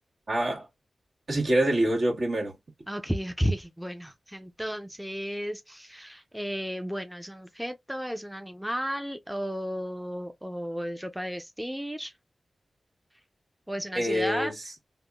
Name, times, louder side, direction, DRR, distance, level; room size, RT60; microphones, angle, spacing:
voice 1, 0.3-0.7 1.3-2.6 13.9-14.7, right 1 dB, 65° right, 1.5 m, -26 dB
voice 2, 2.9-12.1 13.7-14.5, equal, 5° right, 0.5 m, -33 dB
3.5 x 2.0 x 2.3 m
cardioid pair, 45°, 0 cm